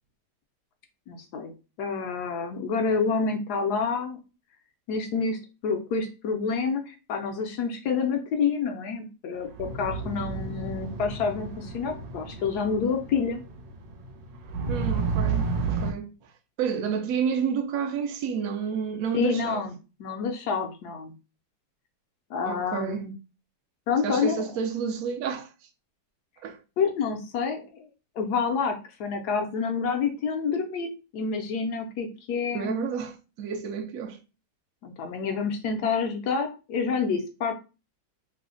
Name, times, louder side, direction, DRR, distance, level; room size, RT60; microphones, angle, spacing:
voice 1, 1.1-1.5 1.8-4.2 4.9-13.4 19.1-19.7 20.0-21.1 22.3-23.1 23.9-24.4 26.8-27.9 28.2-32.9 34.8-37.5, left 5 dB, 70° left, 1.0 m, -28 dB
sound 1, 9.5-15.9, right 4 dB, 85° right, 1.3 m, -31 dB
voice 2, 14.7-16.1 16.6-19.7 22.4-23.1 24.0-25.5 26.4-26.6 32.5-34.2, right 7 dB, 70° right, 0.9 m, -30 dB
3.2 x 2.1 x 3.6 m
omnidirectional pair, 1.9 m